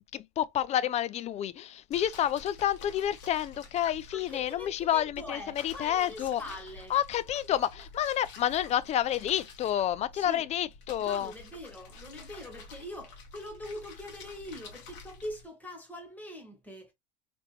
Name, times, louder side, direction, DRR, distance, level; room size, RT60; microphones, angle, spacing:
voice 1, 0.1-6.4 6.9-11.3, left 11 dB, 30° left, 0.3 m, -29 dB
sound 1, 1.9-15.4, left 3 dB, 55° left, 1.5 m, -49 dB
voice 2, 4.1-6.9 10.1-10.4 11.0-16.9, left 1 dB, 10° left, 1.7 m, -43 dB
3.4 x 3.0 x 3.0 m
supercardioid pair, 110°, 21 cm